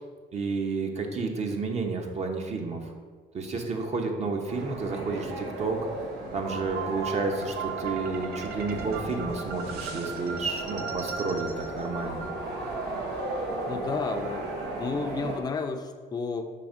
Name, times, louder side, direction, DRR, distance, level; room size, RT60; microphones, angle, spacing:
voice 1, 0.3-2.9 3.3-5.8 6.3-12.2, right 4 dB, 40° right, 3 dB, 0.9 m, -31 dB
sound 1, 4.5-15.4, right 2 dB, 90° right, 1.2 m, -35 dB
sound 2, 6.7-12.8, right 6 dB, 70° right, 0.7 m, -38 dB
voice 2, 13.7-14.5 14.8-16.4, left 4 dB, 25° left, 6 dB, 0.5 m, -31 dB
5.9 x 3.5 x 5.0 m, 1.5 s
cardioid pair, 110°, 17 cm